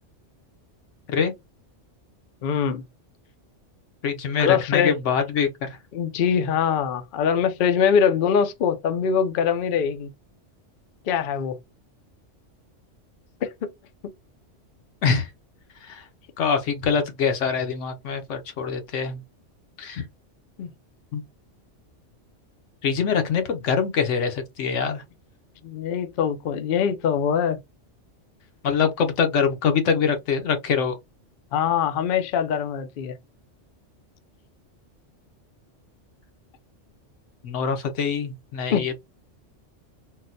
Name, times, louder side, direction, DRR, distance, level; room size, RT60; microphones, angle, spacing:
voice 1, 2.4-2.8 4.4-4.9 5.9-10.1 11.1-11.6 13.4-13.7 20.6-20.7 25.6-27.6 31.5-33.1 38.7-38.8, left 7 dB, 60° left, 0.6 m, -23 dB
voice 2, 4.0-5.8 15.0-15.3 15.8-16.0 16.4-19.2 19.8-20.0 21.1-21.2 22.8-25.0 28.6-31.0 37.4-39.0, left 6 dB, 80° left, 1.0 m, -24 dB
3.9 x 2.1 x 2.5 m
omnidirectional pair, 1.2 m